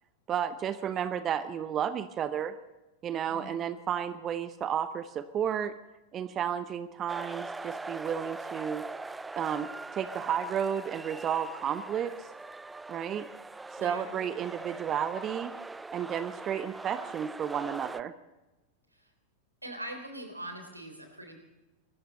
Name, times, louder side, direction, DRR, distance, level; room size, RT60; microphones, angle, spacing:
voice 1, 0.3-2.5 3.0-5.7 6.1-8.8 9.4-12.3 12.9-13.3 13.7-15.5 15.9-18.1, right 8 dB, 30° right, 13 dB, 0.8 m, -32 dB
voice 2, 3.2-3.5 13.8-14.1 18.9-19.1 19.6-21.4, right 1 dB, 85° right, 5 dB, 3.6 m, -42 dB
sound 1, 7.1-18.0, right 3 dB, 10° right, 0.5 m, -42 dB
24.0 x 14.5 x 4.1 m, 1.1 s
figure-of-eight pair, 90°, 0 cm